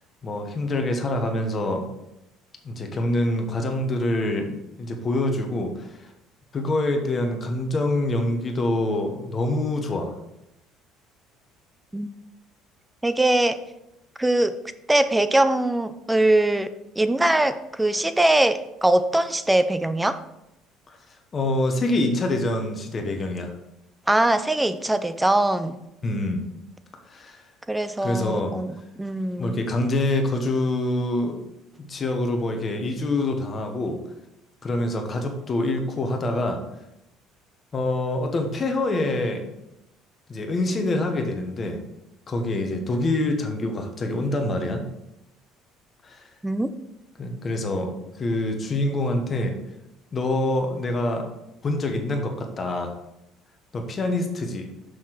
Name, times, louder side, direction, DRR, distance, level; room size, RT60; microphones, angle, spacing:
voice 1, 0.2-1.9 2.6-5.9 6.5-10.1 21.3-23.5 26.0-26.4 27.1-27.4 28.0-28.5 29.4-31.4 31.9-34.0 34.6-36.6 37.7-39.4 40.3-41.8 42.3-44.8 46.0-46.3 47.2-49.5 50.1-51.3 51.6-52.9 53.7-54.7, left 2 dB, 25° left, 4 dB, 1.1 m, -25 dB
voice 2, 13.0-13.6 14.2-14.6 14.9-20.2 24.1-25.8 27.7-28.7 29.0-29.6 46.4-46.7, right 1 dB, 5° right, 12 dB, 0.4 m, -22 dB
6.3 x 5.7 x 4.5 m, 0.86 s
cardioid pair, 165°, 0 cm